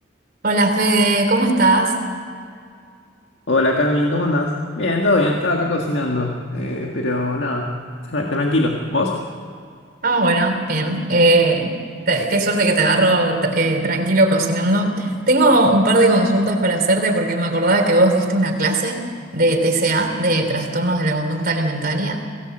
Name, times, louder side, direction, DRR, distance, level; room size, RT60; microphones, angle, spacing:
voice 1, 0.4-1.9 10.0-11.8 12.1-19.0 19.3-22.2, right 2 dB, 50° right, 3 dB, 3.3 m, -18 dB
voice 2, 3.5-7.8 8.1-9.2, left 2 dB, 65° left, 1 dB, 1.8 m, -21 dB
23.0 x 17.5 x 7.8 m, 2.3 s
head